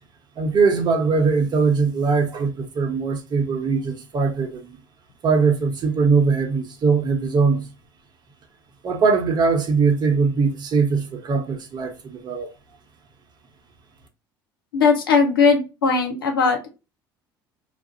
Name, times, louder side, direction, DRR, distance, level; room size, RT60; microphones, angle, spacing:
voice 1, 0.4-4.8 5.2-7.7 8.8-12.5, right 4 dB, 40° right, 0.8 m, -21 dB
voice 2, 14.7-16.7, left 5 dB, 85° left, 0.6 m, -18 dB
2.4 x 2.0 x 2.6 m
hypercardioid pair, 65°, 11 cm